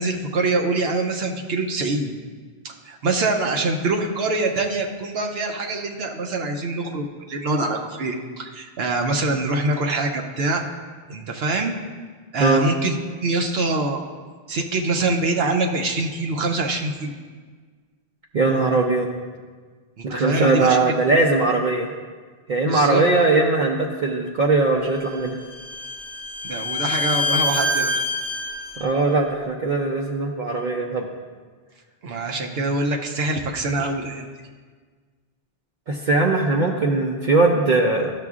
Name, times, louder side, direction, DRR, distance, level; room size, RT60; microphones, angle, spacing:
voice 1, 0.0-2.1 2.6-10.6 11.1-11.7 12.3-12.9 13.2-14.0 14.5-17.1 20.0-20.8 22.7-23.0 26.4-28.0 32.0-34.3, right 2 dB, 75° right, 2 dB, 0.9 m, -24 dB
voice 2, 18.3-19.1 20.0-21.9 22.5-25.4 28.8-31.1 35.9-38.1, right 3 dB, 55° right, 0 dB, 0.7 m, -20 dB
Bowed string instrument, 25.0-28.8, left 2 dB, 25° right, 0.9 m, -26 dB
12.0 x 6.7 x 2.4 m, 1.5 s
omnidirectional pair, 1.0 m